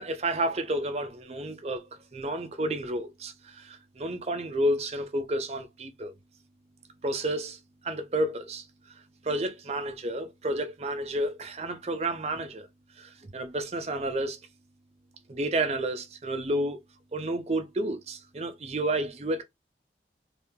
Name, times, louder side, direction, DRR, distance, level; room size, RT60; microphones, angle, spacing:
voice 1, 0.0-1.8 2.1-6.1 7.0-7.6 7.8-8.6 9.2-12.7 13.0-14.4 15.3-16.8 17.1-19.4, right 1 dB, 35° right, 0.5 m, -30 dB
2.7 x 2.5 x 3.6 m
head